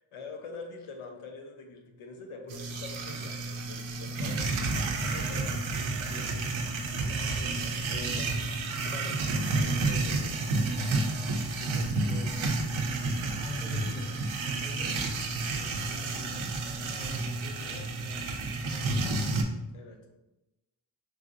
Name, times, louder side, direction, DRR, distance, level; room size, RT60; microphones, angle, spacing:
voice 1, 0.0-6.3 6.8-10.5 11.4-13.4 19.7-20.1, left 3 dB, 85° left, 3 dB, 0.6 m, -46 dB
sound 1, 2.5-19.4, right 3 dB, 70° right, 0.5 m, -30 dB
voice 2, 13.2-19.4, left 1 dB, 5° left, -3 dB, 0.7 m, -45 dB
3.3 x 2.6 x 2.4 m, 0.99 s
cardioid pair, 45°, 49 cm